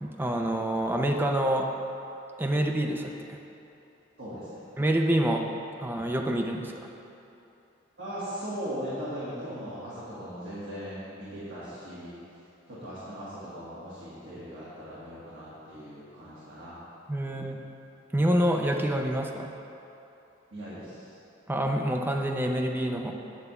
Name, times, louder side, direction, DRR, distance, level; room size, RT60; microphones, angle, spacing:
voice 1, 0.0-1.7 2.4-3.4 4.8-5.4 5.8-6.9 17.1-17.6 18.1-19.5 21.5-23.1, right 1 dB, 10° right, 2 dB, 0.5 m, -27 dB
voice 2, 4.2-4.7 8.0-12.1 12.7-16.8 17.2-17.6 20.5-21.2, equal, 70° right, -11 dB, 1.9 m, -39 dB
8.9 x 3.5 x 6.7 m, 2.9 s
head